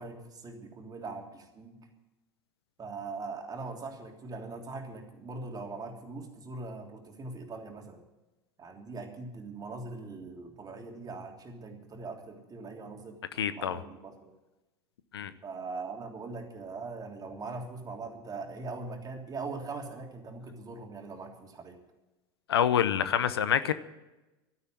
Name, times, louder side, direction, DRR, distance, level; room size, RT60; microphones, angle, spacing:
voice 1, 0.0-1.9 2.8-8.0 8.6-14.3 15.4-21.8, right 3 dB, 30° right, 3.2 m, -41 dB
voice 2, 13.4-13.8 15.1-15.3 22.5-23.7, left 9 dB, 90° left, 0.8 m, -26 dB
12.5 x 9.8 x 9.1 m
hypercardioid pair, 85°, 13 cm